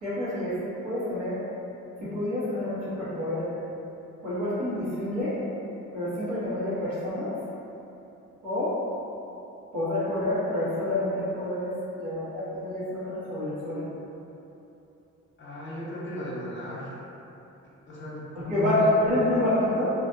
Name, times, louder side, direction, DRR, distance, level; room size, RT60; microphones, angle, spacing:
voice 1, 0.0-0.5 0.8-1.4 2.1-3.5 4.2-5.4 5.9-7.3 8.4-8.7 9.7-13.9 18.3-19.9, left 1 dB, 85° right, -11 dB, 1.2 m, -28 dB
voice 2, 15.4-17.0 17.9-18.2 18.5-18.9, equal, 40° left, -7 dB, 0.7 m, -35 dB
2.5 x 2.4 x 2.5 m, 2.9 s
cardioid pair, 90°, 30 cm